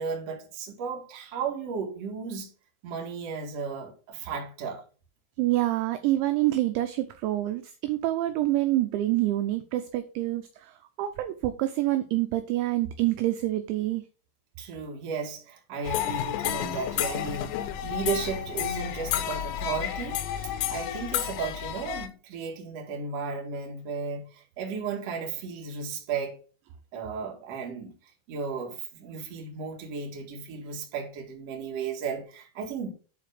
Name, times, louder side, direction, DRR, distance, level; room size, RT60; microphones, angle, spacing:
voice 1, 0.0-2.5 2.8-4.8 14.6-26.4 26.9-27.9 28.3-32.9, right 5 dB, 55° right, 1.9 m, -34 dB
voice 2, 5.4-14.0, right 15 dB, 85° right, 2.6 m, -27 dB
sound 1, 15.8-22.1, left 11 dB, 85° left, 3.3 m, -31 dB
9.4 x 4.0 x 5.0 m
omnidirectional pair, 5.8 m